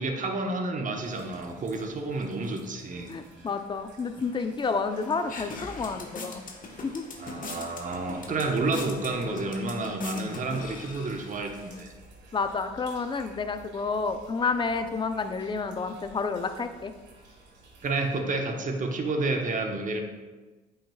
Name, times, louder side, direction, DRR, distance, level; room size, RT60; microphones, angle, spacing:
voice 1, 0.0-3.1 7.2-11.9 17.8-20.0, right 3 dB, 40° right, 4 dB, 1.1 m, -30 dB
sound 1, 0.9-18.2, right 2 dB, 65° right, 1.4 m, -54 dB
voice 2, 3.1-6.4 6.8-7.1 12.3-16.9, left 4 dB, 25° left, 8 dB, 0.6 m, -30 dB
sound 2, 4.9-11.8, left 3 dB, 45° left, 1.2 m, -41 dB
8.6 x 5.6 x 2.3 m, 1.2 s
hypercardioid pair, 55°, 20 cm